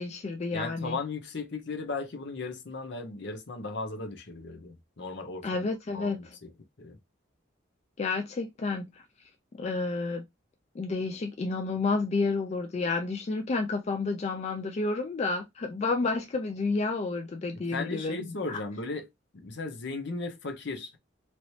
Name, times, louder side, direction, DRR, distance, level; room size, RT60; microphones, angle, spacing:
voice 1, 0.0-1.0 5.4-6.3 8.0-8.9 9.6-10.2 10.8-18.2 18.5-18.6, left 3 dB, 35° left, 0.3 m, -30 dB
voice 2, 0.5-5.6 5.9-6.5 6.8-7.0 17.7-21.0, left 3 dB, 65° left, 0.7 m, -36 dB
2.9 x 2.7 x 3.1 m
head